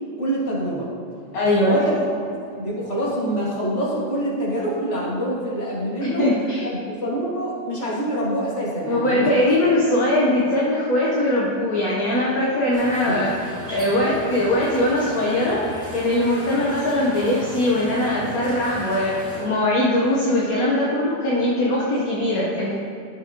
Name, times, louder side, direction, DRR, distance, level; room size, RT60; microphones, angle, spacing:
voice 1, 0.2-0.9 1.6-2.0 2.3-6.3 6.6-9.3 13.1-13.3, right 1 dB, 40° left, -6 dB, 2.3 m, -26 dB
voice 2, 1.3-1.8 6.0-6.7 8.9-13.3 13.7-15.6 15.9-22.8, left 1 dB, 55° left, -5 dB, 1.5 m, -21 dB
sound 1, 12.7-19.5, equal, 10° right, 1.9 m, -35 dB
11.5 x 7.8 x 2.9 m, 2.4 s
omnidirectional pair, 1.9 m